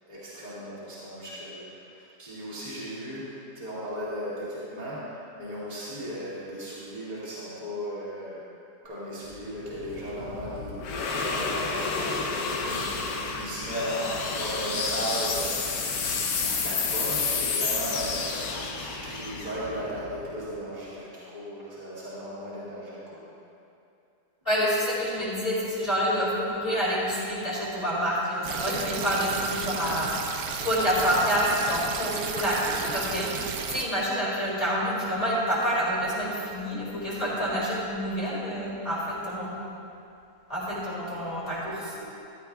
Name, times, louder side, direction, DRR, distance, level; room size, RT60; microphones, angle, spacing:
voice 1, 0.1-8.5 8.8-15.9 16.4-23.3, equal, 25° right, -11 dB, 2.5 m, -36 dB
sound 1, 9.3-20.6, left 4 dB, 65° left, 1.3 m, -30 dB
voice 2, 24.4-30.1 30.5-33.3 33.7-39.5 40.5-42.0, equal, 35° left, -8 dB, 2.6 m, -27 dB
sound 2, 28.4-33.8, right 6 dB, 90° right, 1.3 m, -33 dB
14.0 x 11.5 x 2.4 m, 2.6 s
omnidirectional pair, 1.7 m